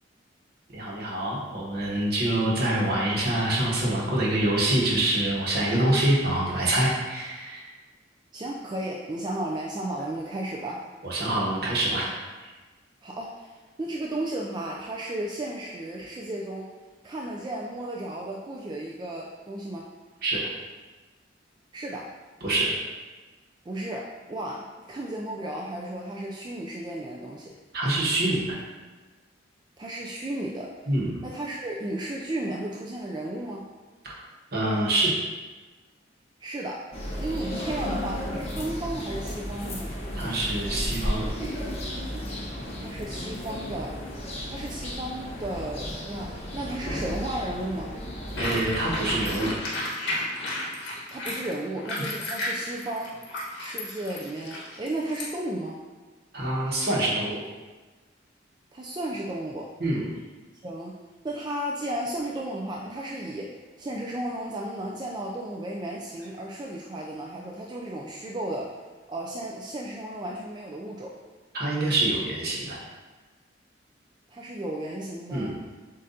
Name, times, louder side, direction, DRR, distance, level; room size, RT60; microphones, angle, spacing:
voice 1, 0.7-7.6 11.0-12.1 20.2-20.5 22.4-22.7 27.7-28.6 30.9-31.2 34.0-34.2 34.5-35.1 40.1-41.5 48.4-49.8 56.3-57.4 59.8-60.1 71.5-72.8 75.3-75.5, right 1 dB, 55° right, -4 dB, 1.1 m, -25 dB
voice 2, 8.3-10.9 13.0-16.7 17.0-19.9 21.7-22.1 23.7-27.5 29.8-30.9 31.2-33.7 36.4-36.9 37.2-39.9 42.8-44.0 44.5-47.9 51.1-53.3 53.6-55.8 58.7-59.7 60.6-61.0 61.2-68.7 69.1-71.2 74.3-75.5, right 1 dB, 25° right, -3 dB, 0.3 m, -34 dB
sound 1, 36.9-49.6, equal, 35° left, 0.9 m, -34 dB
sound 2, 48.4-55.3, left 1 dB, 80° left, 1.3 m, -33 dB
7.5 x 2.5 x 2.7 m, 1.3 s
head